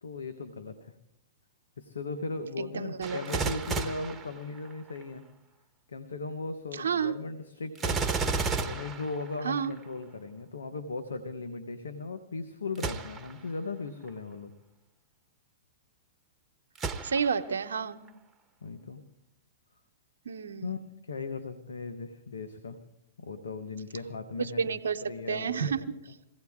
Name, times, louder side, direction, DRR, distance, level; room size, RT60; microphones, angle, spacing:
voice 1, 0.0-0.9 1.8-5.2 5.9-8.0 8.6-14.5 18.6-19.0 20.6-22.8 23.2-24.8 25.1-25.7, left 3 dB, 85° left, 9 dB, 1.2 m, -38 dB
voice 2, 2.6-3.5 6.7-7.1 9.4-9.7 17.0-18.0 20.2-20.8 24.4-25.0 25.3-25.8, right 6 dB, 85° right, 8 dB, 0.9 m, -30 dB
Gunshot gunfire, 3.0-5.0 7.8-9.8 12.8-13.4 14.0-14.1 16.8-17.5 18.1-18.2, right 4 dB, 15° right, 1.2 m, -33 dB
22.5 x 16.0 x 3.7 m, 0.78 s
hypercardioid pair, 115°, 0 cm